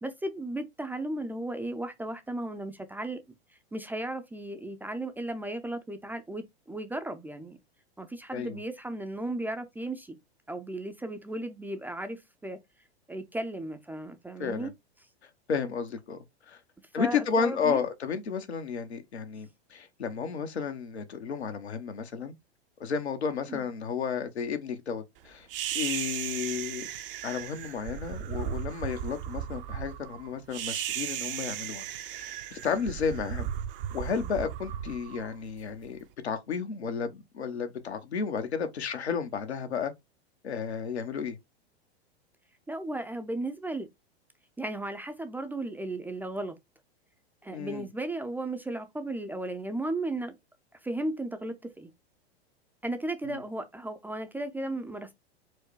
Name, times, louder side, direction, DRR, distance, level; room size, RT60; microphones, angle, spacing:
voice 1, 0.0-3.2 3.7-7.6 8.0-10.2 10.5-12.6 13.1-14.7 17.0-17.8 23.5-23.7 42.7-43.9 44.6-46.5 47.4-50.4 50.8-51.9 52.8-55.1, right 2 dB, 5° right, 0.4 m, -35 dB
voice 2, 15.5-16.2 16.5-16.6 16.9-22.3 22.8-25.5 25.7-26.9 27.2-33.5 33.9-36.0 36.2-39.9 40.4-41.4 47.5-47.9 53.2-53.4, left 6 dB, 80° left, 1.0 m, -32 dB
sound 1, 25.5-35.9, right 11 dB, 60° right, 0.7 m, -36 dB
4.7 x 2.2 x 4.7 m
hypercardioid pair, 100°, 32 cm